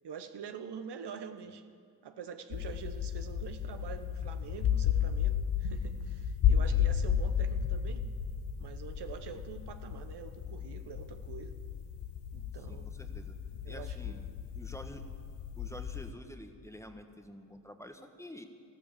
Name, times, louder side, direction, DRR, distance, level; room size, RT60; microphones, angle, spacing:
voice 1, 0.0-1.6 2.0-8.0 8.6-11.5 12.3-14.2, right 7 dB, 65° right, 9 dB, 1.0 m, -46 dB
sound 1, 2.5-16.1, left 8 dB, 65° left, 0.9 m, -33 dB
voice 2, 12.7-13.3 13.7-14.3 14.5-15.0 15.6-18.5, left 1 dB, 5° left, 6 dB, 1.2 m, -48 dB
14.0 x 12.5 x 7.4 m, 2.4 s
cardioid pair, 85°, 44 cm